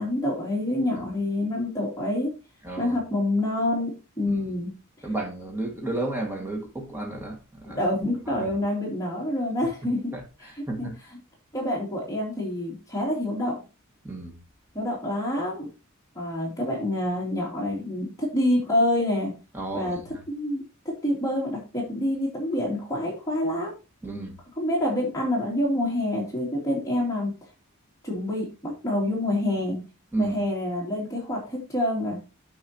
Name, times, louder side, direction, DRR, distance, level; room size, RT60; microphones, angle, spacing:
voice 1, 0.0-2.3 2.8-4.7 7.7-10.5 10.8-10.9 11.5-13.6 14.7-15.7 16.1-19.3 19.7-20.0 20.3-23.7 24.6-27.3 28.0-29.8 30.2-32.2, left 1 dB, 15° left, 3.0 m, -27 dB
voice 2, 2.6-3.0 4.3-4.4 5.0-7.8 8.4-8.5 10.1-10.9 14.0-14.4 19.5-20.2 24.0-24.4 30.1-30.4, right 2 dB, 10° right, 1.9 m, -32 dB
9.7 x 7.2 x 2.9 m
head